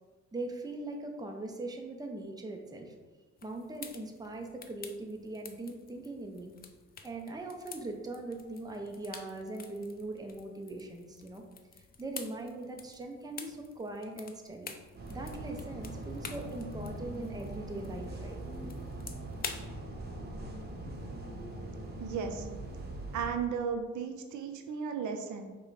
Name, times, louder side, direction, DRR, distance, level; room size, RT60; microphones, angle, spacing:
voice 1, 0.3-3.0 3.4-6.5 7.0-11.4 11.7-14.7 15.1-18.7, right 2 dB, 15° right, 2 dB, 0.6 m, -41 dB
sound 1, 3.4-19.7, left 5 dB, 30° left, 0.4 m, -49 dB
sound 2, 14.9-23.3, right 1 dB, 35° right, 0.9 m, -41 dB
voice 2, 22.0-22.5 23.1-25.6, right 6 dB, 75° right, 6 dB, 0.5 m, -35 dB
5.0 x 2.3 x 4.0 m, 1.3 s
cardioid pair, 90°, 30 cm